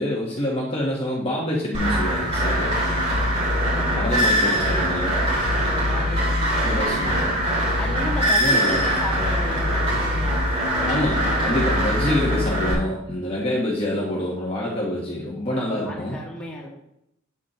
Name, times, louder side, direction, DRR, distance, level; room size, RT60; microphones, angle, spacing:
voice 1, 0.0-2.7 3.1-3.2 4.0-5.1 6.6-7.3 8.4-8.8 10.9-16.2, left 1 dB, 25° left, -5 dB, 1.3 m, -26 dB
sound 1, 1.7-12.7, equal, 30° right, 3.2 m, -22 dB
voice 2, 3.7-4.9 5.3-7.2 7.5-11.6 15.5-16.7, left 1 dB, 5° left, -5 dB, 1.9 m, -36 dB
8.2 x 8.1 x 3.0 m, 0.80 s
head